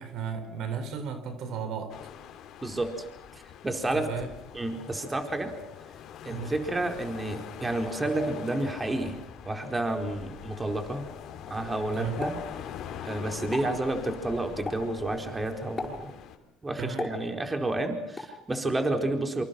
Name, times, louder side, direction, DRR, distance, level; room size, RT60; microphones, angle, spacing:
voice 1, 0.0-1.9 3.9-4.3 6.3-6.5 11.9-12.2 16.8-17.1, right 6 dB, 65° right, 9 dB, 4.2 m, -34 dB
sound 1, 1.9-16.4, left 8 dB, 65° left, 3.6 m, -43 dB
voice 2, 2.6-3.0 3.6-4.1 4.5-5.5 6.2-11.0 11.5-12.4 13.0-16.1 16.6-19.4, right 2 dB, 20° right, 5 dB, 4.6 m, -30 dB
Explosion, 12.2-13.1 13.4-13.8 14.7-15.0 15.8-16.2 17.0-17.7 18.2-18.4, left 2 dB, 25° left, 6.9 m, -37 dB
28.0 x 26.5 x 6.2 m, 0.82 s
supercardioid pair, 75°, 0 cm